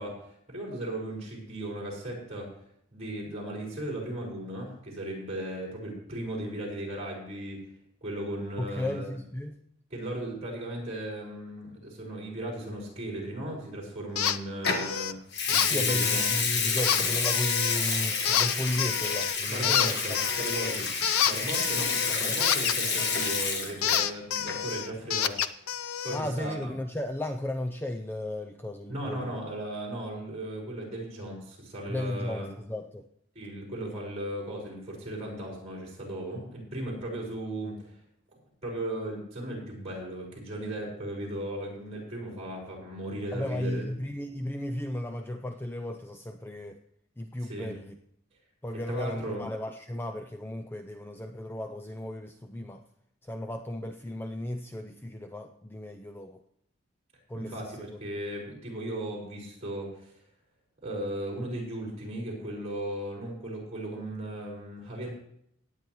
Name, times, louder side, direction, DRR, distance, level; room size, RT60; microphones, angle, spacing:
voice 1, 0.0-2.5 2.9-7.6 8.0-9.0 9.9-15.1 15.5-16.3 19.5-20.9 21.2-26.7 28.9-32.5 33.3-37.9 38.6-43.8 47.4-47.8 48.9-49.4 57.3-60.1 60.8-65.1, right 1 dB, 30° right, -4 dB, 4.8 m, -36 dB
voice 2, 8.6-9.6 15.6-20.0 26.1-29.4 31.9-33.1 43.3-46.8 47.2-48.0 48.6-52.8 53.2-56.4 57.3-57.7, left 1 dB, 10° left, 5 dB, 0.4 m, -35 dB
sound 1, 14.2-14.4 14.6-15.1 15.5-16.4 16.8-17.8 18.3-19.4 19.6-23.4 23.8-26.2, left 9 dB, 85° left, 0.5 m, -28 dB
Water tap faucet / Sink (filling or washing) / Liquid, 14.7-14.9 15.3-24.1 24.4-24.7, left 5 dB, 50° left, 1.4 m, -29 dB
18.0 x 9.1 x 3.1 m, 0.71 s
head